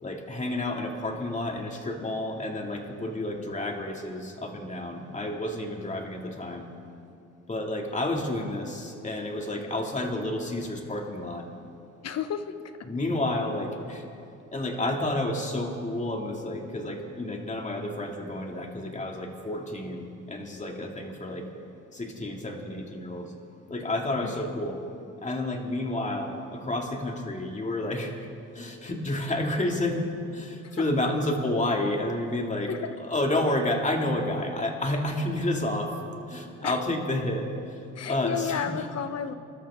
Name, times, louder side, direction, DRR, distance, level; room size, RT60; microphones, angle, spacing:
voice 1, 0.0-6.7 7.5-11.5 12.8-14.0 14.5-21.5 21.9-23.3 23.7-24.8 25.2-28.1 28.5-35.9 36.3-38.9, left 1 dB, 25° left, 1 dB, 2.4 m, -30 dB
voice 2, 12.0-12.5 24.2-24.4 30.6-30.8 32.7-32.9 36.6-36.8 37.9-39.3, left 8 dB, 55° left, 10 dB, 1.0 m, -32 dB
27.5 x 12.5 x 3.7 m, 2.5 s
cardioid pair, 90°, 30 cm